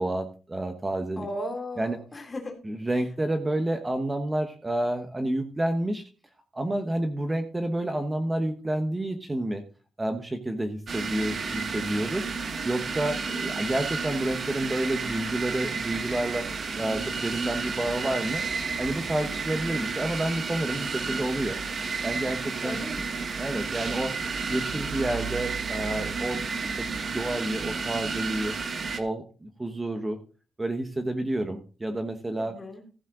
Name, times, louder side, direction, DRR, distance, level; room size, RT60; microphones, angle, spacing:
voice 1, 0.0-1.3 1.8-2.0 2.6-6.0 6.5-9.6 10.0-12.3 12.6-16.5 16.8-18.4 18.8-21.6 22.0-22.8 23.4-24.2 24.5-28.5 29.0-30.2 30.6-32.5, right 1 dB, 15° right, 6 dB, 1.1 m, -29 dB
voice 2, 1.2-2.6 22.6-23.1 32.4-32.8, left 1 dB, 25° left, 4 dB, 2.7 m, -36 dB
sound 1, 10.9-29.0, right 4 dB, 45° right, 1.4 m, -32 dB
15.0 x 7.3 x 3.8 m, 0.37 s
wide cardioid pair, 165°, 0 cm